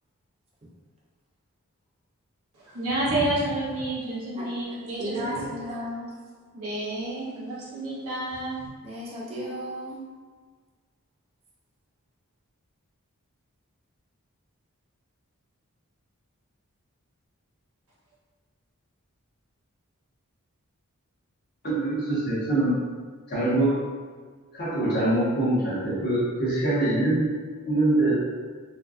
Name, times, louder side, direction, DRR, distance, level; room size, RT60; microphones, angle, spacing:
voice 1, 2.5-5.9 6.5-8.7, right 1 dB, 75° right, -8 dB, 0.9 m, -30 dB
voice 2, 5.0-6.1 8.8-10.0, equal, 25° right, -5 dB, 0.6 m, -34 dB
voice 3, 21.6-22.8 23.3-23.8 24.5-27.3 27.6-28.2, right 2 dB, 45° left, -9 dB, 1.2 m, -24 dB
4.3 x 2.5 x 2.4 m, 1.5 s
head